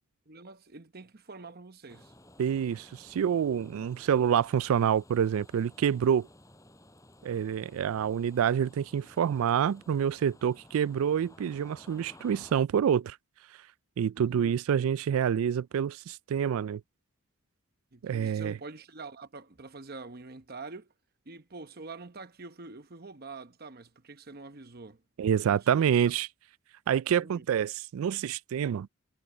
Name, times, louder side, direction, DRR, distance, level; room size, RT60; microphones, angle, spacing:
voice 1, 0.3-2.1 14.2-14.5 17.9-20.9 21.3-25.0 25.4-25.7 26.9-27.4, right 3 dB, 45° right, 0.9 m, -46 dB
sound 1, 1.9-12.5, left 1 dB, 15° left, 5.3 m, -56 dB
voice 2, 2.4-6.3 7.2-13.2 14.0-16.8 18.0-18.6 25.2-26.3 26.9-28.9, right 8 dB, 70° right, 0.3 m, -27 dB
head